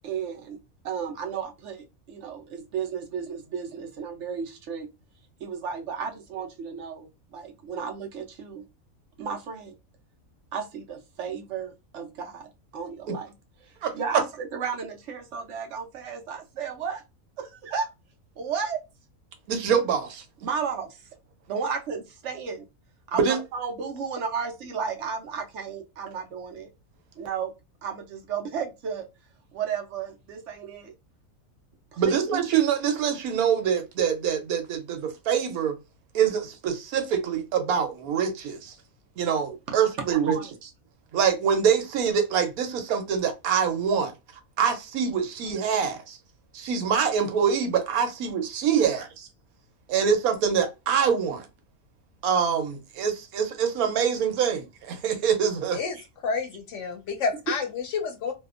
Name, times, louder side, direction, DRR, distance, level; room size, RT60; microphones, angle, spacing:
voice 1, 0.0-0.6 0.8-4.9 5.4-8.6 9.2-9.7 10.5-13.2 13.9-17.0 17.4-17.9 18.4-18.8 20.4-21.1 21.5-22.7 23.1-26.7 27.2-27.5 27.8-29.1 29.5-30.9 31.9-32.2 39.7-39.8 40.1-40.5, right 6 dB, 65° right, 0.8 m, -33 dB
voice 2, 13.8-14.2 19.5-20.2 23.1-23.4 32.0-35.8 36.1-38.7 39.2-40.4 41.1-44.1 44.6-46.2 46.5-49.3 49.9-51.5 52.2-55.8, right 7 dB, 85° right, 1.2 m, -25 dB
voice 3, 56.2-58.3, left 5 dB, 65° left, 0.9 m, -29 dB
2.7 x 2.2 x 2.4 m
omnidirectional pair, 1.5 m